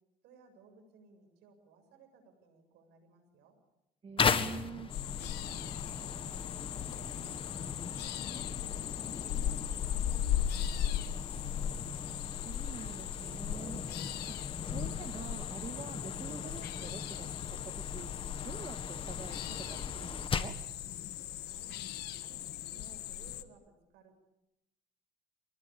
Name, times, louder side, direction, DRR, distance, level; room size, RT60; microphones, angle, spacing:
voice 1, 0.2-3.6 4.4-6.4 6.7-8.9 9.2-11.3 21.4-21.8 22.2-24.1, right 2 dB, 85° right, 6 dB, 7.6 m, -60 dB
voice 2, 4.0-4.9 12.0-13.8 14.3-20.6, right 5 dB, 35° right, 8 dB, 1.8 m, -47 dB
sound 1, 4.2-20.7, left 5 dB, 30° left, 1.8 m, -38 dB
sound 2, 4.9-23.4, left 11 dB, 75° left, 1.5 m, -38 dB
sound 3, 5.3-21.9, left 1 dB, 10° left, 6.5 m, -64 dB
26.0 x 20.0 x 8.6 m, 0.91 s
cardioid pair, 110°, 17 cm